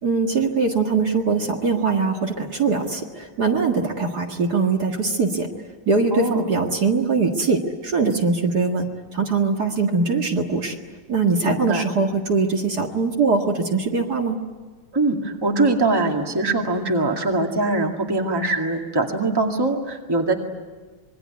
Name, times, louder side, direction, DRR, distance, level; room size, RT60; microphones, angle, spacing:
voice 1, 0.0-5.5 5.9-10.8 11.1-14.4, right 4 dB, 50° right, 2 dB, 2.3 m, -22 dB
voice 2, 6.1-6.5 11.4-11.8 14.9-20.3, right 2 dB, 10° right, 2 dB, 2.0 m, -22 dB
26.5 x 22.0 x 9.5 m, 1.4 s
omnidirectional pair, 2.3 m